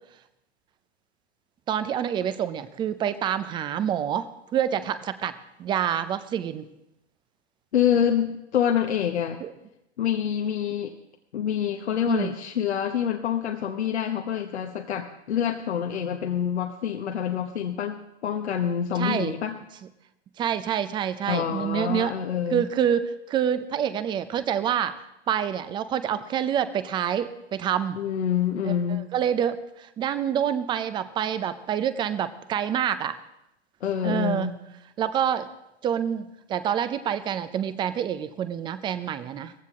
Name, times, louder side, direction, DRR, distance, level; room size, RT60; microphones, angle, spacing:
voice 1, 1.7-6.7 9.4-9.5 12.1-12.3 18.9-19.3 20.4-22.1 22.5-24.9 25.3-28.0 28.6-33.2 34.0-34.5 35.0-35.5 35.8-39.5, right 9 dB, 15° right, 13 dB, 0.5 m, -27 dB
voice 2, 7.7-9.4 10.0-10.9 11.3-19.6 21.3-22.6 28.0-29.1 33.8-34.5, left 9 dB, 75° left, 3 dB, 1.2 m, -26 dB
17.5 x 15.5 x 3.7 m, 0.85 s
hypercardioid pair, 125°, 34 cm